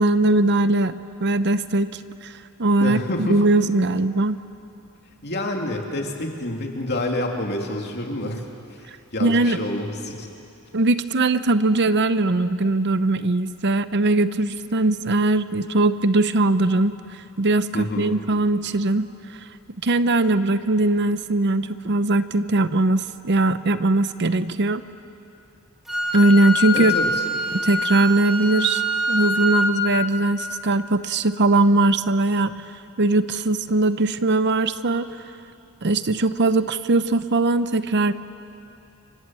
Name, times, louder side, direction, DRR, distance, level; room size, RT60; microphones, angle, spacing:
voice 1, 0.0-2.3 2.6-4.4 9.2-9.6 10.7-17.0 17.4-19.1 19.8-24.8 26.1-26.9 27.5-28.8 29.1-32.6 33.0-35.1 35.8-38.1, right 2 dB, 50° right, 12 dB, 0.7 m, -20 dB
voice 2, 2.8-3.4 5.2-8.4 9.1-10.3 17.7-18.1 26.7-27.1, left 1 dB, 50° left, 1 dB, 3.0 m, -27 dB
Wind instrument woodwind instrument, 25.9-29.7, left 1 dB, ahead, 4.5 m, -24 dB
29.5 x 26.0 x 7.8 m, 2.7 s
head